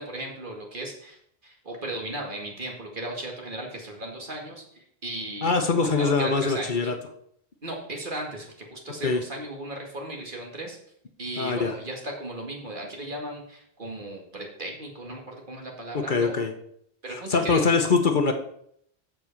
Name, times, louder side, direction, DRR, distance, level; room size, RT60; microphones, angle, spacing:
voice 1, 0.0-5.5 5.8-6.8 7.6-10.8 11.2-16.4 17.0-17.7, right 1 dB, 50° right, 0 dB, 2.2 m, -36 dB
voice 2, 5.4-7.0 9.0-9.2 11.4-11.7 15.9-16.5 17.1-18.3, left 4 dB, 50° left, 6 dB, 1.0 m, -23 dB
7.7 x 6.4 x 7.0 m, 0.70 s
omnidirectional pair, 1.1 m